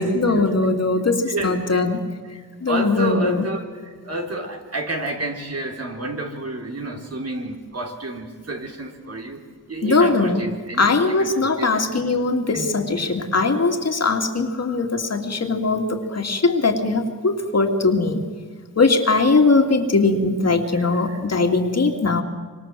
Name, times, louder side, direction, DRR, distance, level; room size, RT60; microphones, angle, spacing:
voice 1, 0.0-2.1 2.6-3.5 9.8-10.4 10.8-18.2 18.8-22.2, left 3 dB, 45° left, 4 dB, 2.9 m, -20 dB
voice 2, 1.3-1.9 2.7-9.4 9.7-12.0 12.5-12.7 13.0-13.1 20.7-21.2, right 2 dB, 45° right, 2 dB, 4.1 m, -30 dB
26.0 x 25.0 x 7.7 m, 1.5 s
cardioid pair, 70°, 35 cm